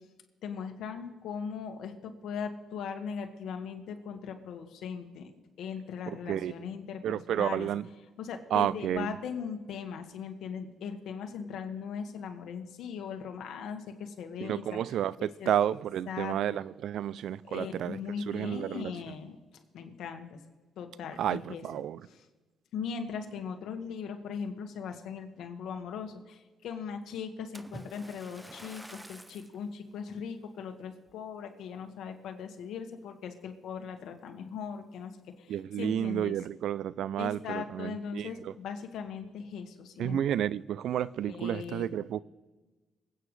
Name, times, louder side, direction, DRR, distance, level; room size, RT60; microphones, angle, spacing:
voice 1, 0.4-7.7 8.2-15.8 16.1-16.3 17.5-20.4 20.8-21.6 22.7-35.1 35.4-36.4 37.2-40.2 41.3-42.0, left 6 dB, 80° left, 1.7 m, -39 dB
voice 2, 6.1-6.5 7.0-7.9 8.5-9.2 14.4-18.0 18.3-18.9 21.2-22.0 35.5-38.5 40.0-42.2, right 10 dB, 75° right, 0.4 m, -31 dB
Splash splatter, 27.5-29.6 30.2-30.5 31.1-31.2, right 1 dB, 5° right, 0.6 m, -48 dB
26.5 x 9.0 x 3.3 m
cardioid pair, 90°, 0 cm